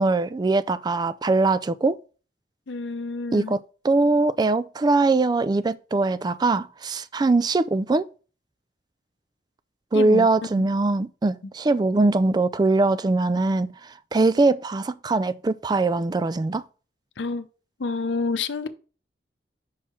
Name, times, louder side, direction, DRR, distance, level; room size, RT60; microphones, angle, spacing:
voice 1, 0.0-2.0 3.3-8.1 9.9-13.7 14.1-16.6, right 3 dB, 25° right, 0.3 m, -22 dB
voice 2, 2.7-3.6 9.9-10.3 10.5-10.6 17.2-17.4 17.8-18.7, left 3 dB, 90° left, 0.6 m, -28 dB
5.7 x 4.6 x 4.4 m
head